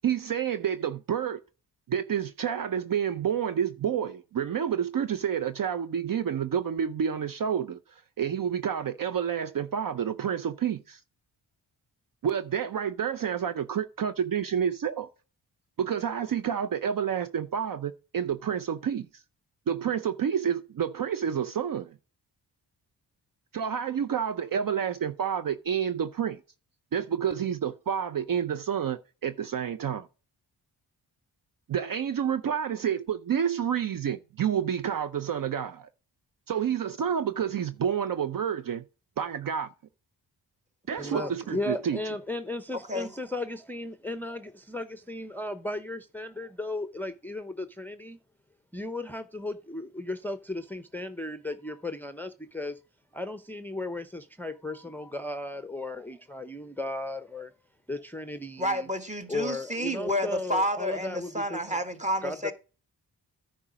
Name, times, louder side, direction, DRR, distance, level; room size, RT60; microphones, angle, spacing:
voice 1, 0.0-1.4 1.9-11.0 12.2-15.1 15.8-19.2 19.7-21.9 23.5-26.4 26.9-30.1 31.7-35.9 36.5-38.8 39.2-39.7 40.9-42.0, right 8 dB, 55° right, 0.6 m, -29 dB
voice 2, 41.0-48.2 48.7-52.8 53.1-57.5 57.9-58.9 59.3-61.8 62.2-62.5, left 2 dB, 5° left, 0.7 m, -35 dB
voice 3, 58.6-62.5, equal, 15° right, 1.5 m, -30 dB
9.9 x 4.9 x 5.0 m
cardioid pair, 75°, 41 cm